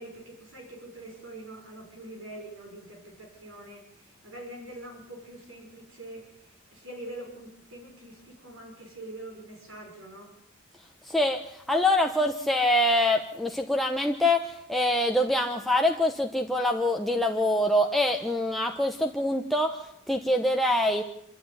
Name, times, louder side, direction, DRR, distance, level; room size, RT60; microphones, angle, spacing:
voice 1, 0.0-10.3, right 1 dB, 75° right, 1 dB, 5.8 m, -44 dB
voice 2, 11.0-21.0, left 1 dB, ahead, 2 dB, 1.1 m, -25 dB
27.5 x 12.5 x 9.7 m, 0.76 s
head